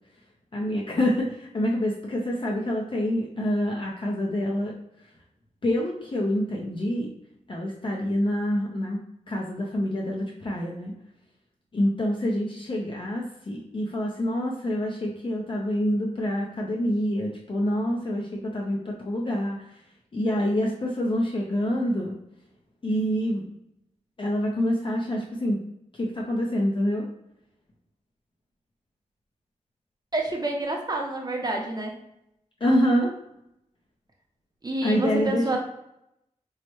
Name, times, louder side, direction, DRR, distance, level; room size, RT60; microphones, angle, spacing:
voice 1, 0.5-4.7 5.6-7.1 7.5-9.0 9.3-10.9 11.7-19.8 20.1-22.2 22.8-23.5 24.2-25.6 25.9-27.1 32.6-33.1 34.8-35.6, equal, 45° left, -2 dB, 0.6 m, -26 dB
voice 2, 30.1-31.9 34.6-35.6, right 2 dB, 35° right, 1 dB, 0.6 m, -28 dB
4.7 x 2.1 x 3.0 m, 0.81 s
wide cardioid pair, 105°, 12 cm